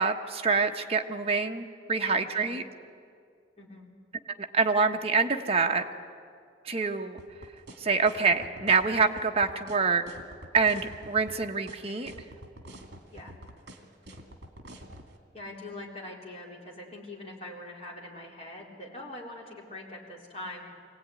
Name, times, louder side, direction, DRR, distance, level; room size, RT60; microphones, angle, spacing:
voice 1, 0.0-2.6 4.5-5.8 6.6-7.2 7.8-10.0 10.5-12.1, right 4 dB, 35° right, 4 dB, 1.2 m, -26 dB
sound 1, 7.2-15.1, right 1 dB, 65° right, 2.4 m, -46 dB
voice 2, 15.3-20.6, left 1 dB, 35° left, -3 dB, 4.0 m, -43 dB
24.0 x 17.0 x 9.7 m, 2.3 s
head